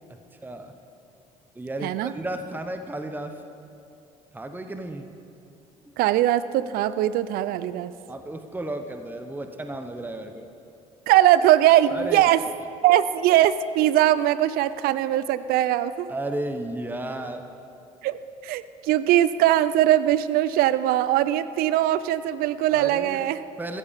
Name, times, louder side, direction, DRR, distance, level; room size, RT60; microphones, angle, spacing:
voice 1, 0.1-0.7 1.5-3.4 4.3-5.1 8.1-10.5 11.9-12.2 16.1-17.4 22.7-23.2 23.6-23.8, right 1 dB, 10° right, 7 dB, 0.9 m, -33 dB
voice 2, 1.8-2.1 6.0-7.9 11.1-12.4 12.8-16.1 18.0-23.4, right 13 dB, 70° right, 15 dB, 0.5 m, -21 dB
15.0 x 13.0 x 3.6 m, 2.6 s
hypercardioid pair, 60°, 16 cm